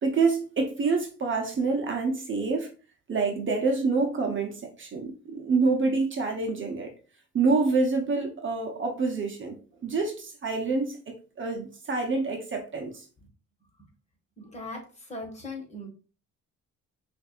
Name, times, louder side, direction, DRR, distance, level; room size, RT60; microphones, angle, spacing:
voice 1, 0.0-2.7 3.1-6.9 7.3-9.6 9.8-11.0 11.4-13.0, right 4 dB, 40° right, 0.9 m, -27 dB
voice 2, 14.4-15.9, left 2 dB, 20° left, 1.7 m, -39 dB
6.0 x 2.7 x 2.4 m
cardioid pair, 90°, 30 cm